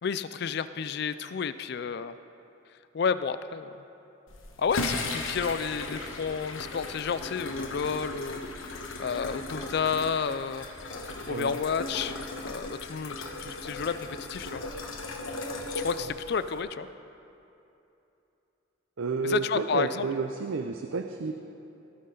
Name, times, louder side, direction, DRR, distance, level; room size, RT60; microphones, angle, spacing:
voice 1, 0.0-2.2 2.9-3.7 4.6-8.4 9.0-10.7 11.0-12.1 12.4-14.6 15.8-16.9 19.2-20.1, left 6 dB, 50° left, 13 dB, 0.3 m, -31 dB
sound 1, 4.3-16.6, left 2 dB, 75° left, 1.2 m, -37 dB
voice 2, 11.3-11.6 16.0-16.1 19.0-21.3, right 4 dB, 75° right, 6 dB, 0.5 m, -31 dB
18.0 x 9.6 x 3.8 m, 2.8 s
head